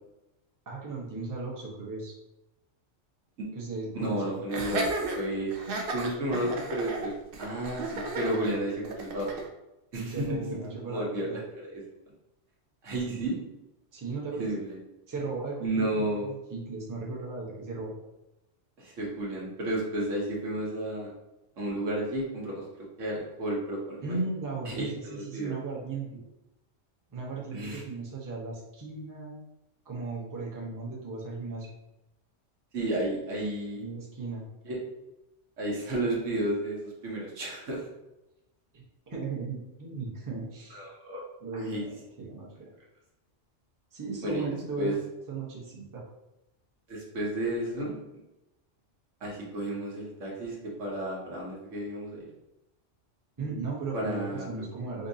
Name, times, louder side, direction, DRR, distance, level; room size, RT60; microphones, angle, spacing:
voice 1, 0.7-2.1 3.5-4.4 10.0-11.4 13.1-13.2 13.9-14.5 15.1-17.9 24.0-26.2 27.1-29.4 29.8-31.7 33.7-34.4 38.7-40.8 41.4-42.7 43.9-45.0 45.3-46.0 53.4-55.1, right 3 dB, 20° right, -4 dB, 0.6 m, -36 dB
voice 2, 3.9-4.9 5.1-5.5 5.9-7.1 7.4-9.4 9.9-11.8 12.8-13.3 14.4-14.8 15.6-16.2 18.8-21.1 21.6-22.6 23.0-24.2 24.6-25.5 27.5-27.8 32.7-33.8 34.6-34.8 35.6-37.8 40.7-41.2 41.5-41.9 44.2-44.4 44.8-44.9 46.9-48.0 49.2-52.2 53.9-54.5, right 1 dB, 90° right, -3 dB, 1.3 m, -32 dB
Laughter, 4.5-9.5, right 2 dB, 60° right, 0.6 m, -34 dB
3.8 x 2.6 x 2.6 m, 0.94 s
omnidirectional pair, 1.3 m